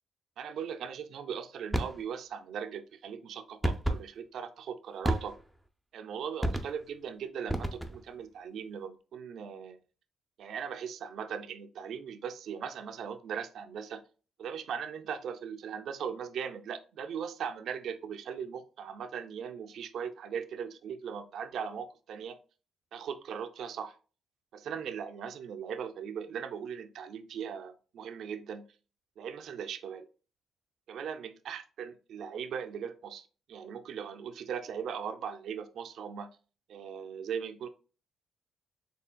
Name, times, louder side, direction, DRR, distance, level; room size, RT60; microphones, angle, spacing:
voice 1, 0.4-5.3 5.9-9.8 10.4-14.0 14.4-22.3 22.9-23.9 24.5-28.6 29.2-30.0 30.9-36.3 36.7-37.7, right 7 dB, 70° right, 8 dB, 0.4 m, -39 dB
sound 1, 1.7-2.0 3.6-4.0 5.0-5.6 6.4-6.9 7.5-8.1, right 1 dB, ahead, 0.4 m, -31 dB
4.3 x 3.3 x 2.2 m, 0.36 s
cardioid pair, 90°, 0 cm